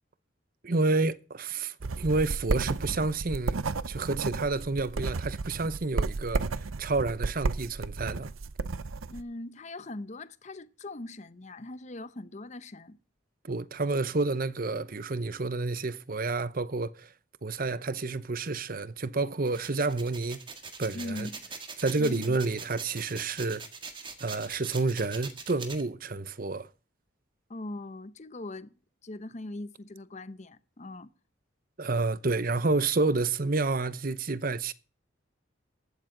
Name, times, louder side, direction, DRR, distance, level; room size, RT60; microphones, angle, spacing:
voice 1, 0.6-8.3 13.4-17.1 17.4-20.4 20.8-21.3 21.8-23.6 24.2-26.7 31.8-34.7, right 3 dB, 45° right, 0.8 m, -29 dB
sound 1, 1.8-9.2, right 3 dB, 85° right, 0.7 m, -33 dB
voice 2, 9.1-13.0 20.9-21.4 22.0-22.3 27.5-28.7 29.0-31.1, left 2 dB, 35° left, 0.7 m, -40 dB
sound 2, 19.5-25.8, right 5 dB, 25° right, 1.8 m, -43 dB
15.5 x 12.0 x 3.9 m
head